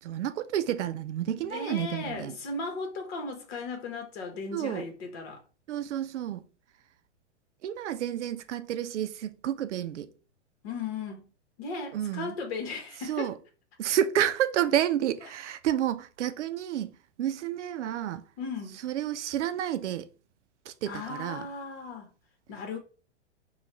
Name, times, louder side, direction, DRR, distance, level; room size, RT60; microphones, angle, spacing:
voice 1, 0.0-2.3 4.5-4.9 5.7-6.4 7.6-10.1 11.9-12.3 13.1-13.3 13.8-16.9 17.2-18.2 18.8-20.1 20.7-21.4, right 11 dB, 75° right, 0.5 m, -30 dB
voice 2, 1.3-5.4 10.6-11.2 11.6-13.4 18.4-18.8 20.9-22.1 22.5-22.8, left 4 dB, 60° left, 1.3 m, -36 dB
3.0 x 2.4 x 4.2 m
hypercardioid pair, 120°, 35 cm